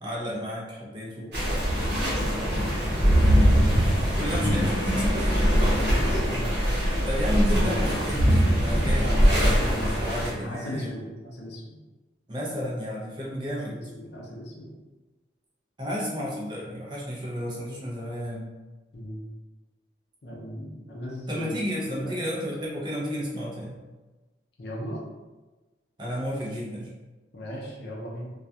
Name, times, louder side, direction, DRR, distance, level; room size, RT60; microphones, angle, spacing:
voice 1, 0.0-1.3 4.2-5.4 7.1-10.9 12.3-13.8 15.8-18.5 21.3-23.8 26.0-26.9, equal, 25° right, -4 dB, 0.5 m, -32 dB
voice 2, 1.2-2.8 4.1-4.4 5.2-7.1 10.4-11.7 13.7-14.7 18.9-19.2 20.2-21.6 22.0-22.2 24.6-25.0 27.3-28.3, equal, 60° left, -3 dB, 0.5 m, -38 dB
sound 1, 1.3-10.3, equal, 60° right, 0.9 m, -22 dB
2.3 x 2.2 x 2.7 m, 1.2 s
head